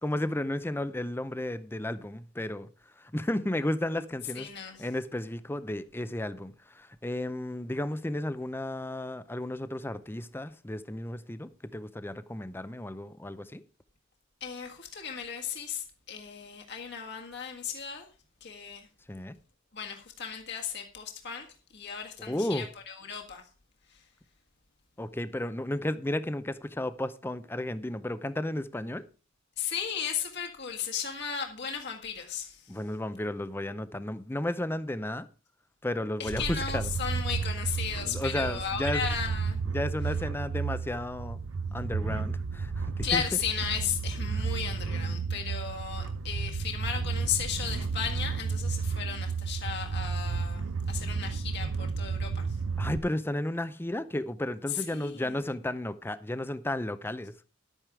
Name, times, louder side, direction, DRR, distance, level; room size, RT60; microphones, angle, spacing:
voice 1, 0.0-2.7 3.0-4.5 4.8-13.6 19.1-19.4 22.2-22.7 25.0-29.0 32.7-35.3 35.8-36.9 38.1-39.0 39.7-41.4 41.7-42.7 43.0-43.2 52.8-57.3, left 1 dB, 10° left, 0.6 m, -33 dB
voice 2, 4.3-4.9 14.4-18.0 18.4-18.9 19.7-21.5 21.7-23.4 23.9-24.0 29.6-32.7 36.2-39.6 43.0-52.5 54.7-55.4, left 7 dB, 55° left, 1.7 m, -35 dB
sound 1, 36.3-53.0, right 5 dB, 80° right, 0.7 m, -32 dB
11.5 x 9.0 x 4.8 m
head